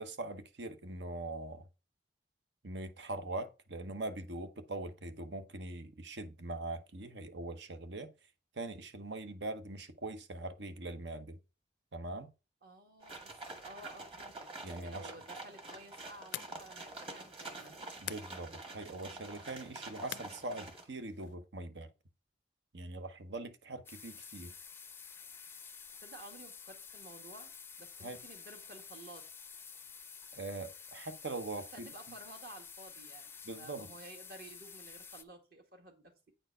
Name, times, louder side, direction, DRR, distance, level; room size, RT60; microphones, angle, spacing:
voice 1, 0.0-1.7 2.6-8.1 8.5-11.4 11.9-12.3 14.6-15.1 18.0-21.9 22.7-24.5 28.0-28.2 30.3-31.9 33.4-33.9, right 2 dB, 75° right, 0.9 m, -42 dB
voice 2, 12.6-17.7 26.0-27.5 27.8-29.3 31.7-36.1, right 2 dB, 55° right, 2.0 m, -53 dB
sound 1, 13.0-20.8, right 2 dB, 30° right, 1.7 m, -47 dB
sound 2, 15.6-21.4, left 12 dB, 80° left, 0.4 m, -50 dB
sound 3, 23.9-35.2, left 6 dB, 15° left, 0.4 m, -51 dB
8.8 x 4.5 x 5.5 m
head